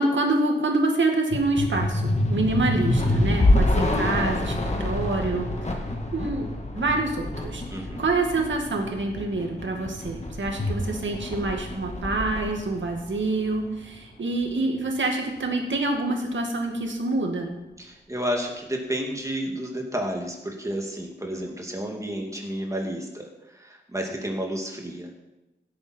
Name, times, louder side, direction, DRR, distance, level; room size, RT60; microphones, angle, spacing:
voice 1, 0.0-5.5 6.1-7.6 8.0-17.5, right 2 dB, 85° right, 2 dB, 2.1 m, -26 dB
sound 1, 1.3-13.8, left 1 dB, 35° left, 1.8 m, -27 dB
voice 2, 7.7-8.0 17.8-25.1, equal, 15° right, 1 dB, 2.5 m, -31 dB
16.5 x 8.6 x 4.6 m, 1.0 s
wide cardioid pair, 95°, 19 cm